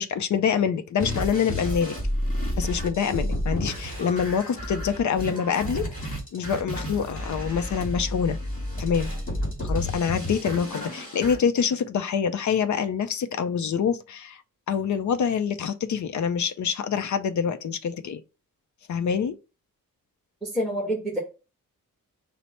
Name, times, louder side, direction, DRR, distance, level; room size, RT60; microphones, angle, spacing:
voice 1, 0.0-1.9 2.6-5.8 6.3-8.4 8.8-9.1 9.6-14.4 14.7-18.2 18.9-19.4, left 7 dB, 60° left, 0.5 m, -26 dB
sound 1, 1.0-11.4, equal, 25° left, 2.4 m, -31 dB
voice 2, 20.4-21.2, equal, ahead, 1.2 m, -27 dB
5.5 x 2.1 x 4.2 m
wide cardioid pair, 140°, 34 cm